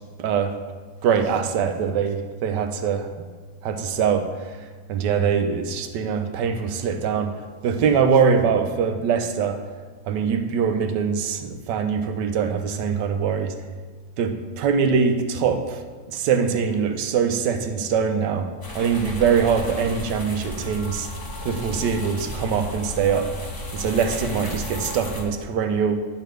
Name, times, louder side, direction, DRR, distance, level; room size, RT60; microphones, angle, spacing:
voice 1, 0.2-0.6 1.0-3.3 3.6-9.6 10.1-13.6 14.2-15.8 16.1-21.1 21.4-23.4 23.7-26.0, right 6 dB, 80° right, 8 dB, 1.2 m, -23 dB
sound 1, 18.6-25.2, left 2 dB, 30° left, 0.4 m, -34 dB
9.6 x 3.3 x 6.3 m, 1.4 s
omnidirectional pair, 1.9 m